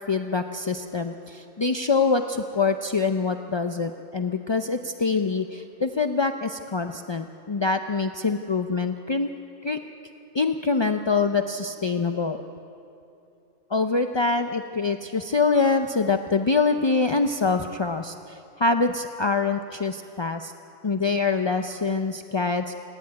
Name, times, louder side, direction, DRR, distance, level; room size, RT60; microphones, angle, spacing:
voice 1, 0.1-9.3 9.6-9.8 10.3-12.4 13.7-20.5 20.8-22.7, left 4 dB, 40° left, 6 dB, 0.4 m, -25 dB
28.5 x 11.0 x 9.5 m, 2.7 s
omnidirectional pair, 1.3 m